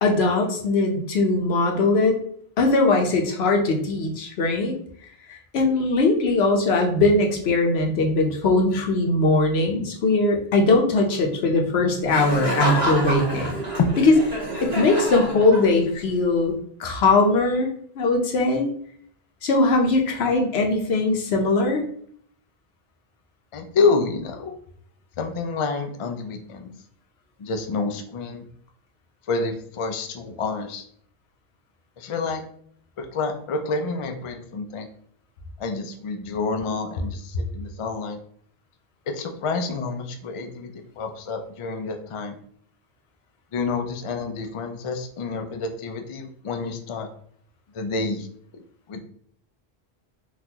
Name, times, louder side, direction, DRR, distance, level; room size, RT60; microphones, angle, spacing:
voice 1, 0.0-2.2 2.6-4.7 5.3-13.5 14.6-16.5 16.8-17.7 18.0-18.7 19.4-21.8, left 2 dB, 80° left, 2 dB, 1.0 m, -20 dB
Laughter, 12.1-16.0, right 1 dB, 75° right, 1.5 m, -28 dB
voice 2, 23.5-24.5 25.2-26.7 27.4-28.5 29.3-30.9 32.0-32.4 33.0-34.9 35.6-38.2 39.1-42.4 43.5-47.1 47.7-48.3 48.9-49.0, left 4 dB, 60° left, 5 dB, 0.3 m, -28 dB
3.9 x 2.4 x 2.8 m, 0.62 s
omnidirectional pair, 1.0 m